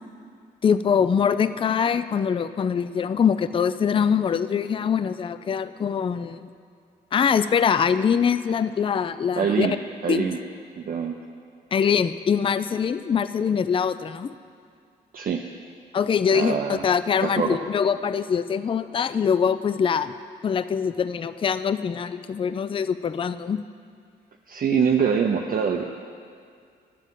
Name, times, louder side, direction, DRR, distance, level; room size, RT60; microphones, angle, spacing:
voice 1, 0.6-6.5 7.1-9.8 10.1-10.3 11.7-14.3 15.9-16.6 16.8-20.1 20.4-23.6, left 7 dB, 25° left, 13 dB, 0.4 m, -23 dB
voice 2, 9.4-9.7 10.0-10.4 10.8-11.2 15.1-15.4 16.3-16.9 17.2-17.6 24.5-25.8, right 6 dB, 45° right, 2 dB, 0.6 m, -24 dB
10.5 x 7.2 x 3.9 m, 2.2 s
hypercardioid pair, 45°, 21 cm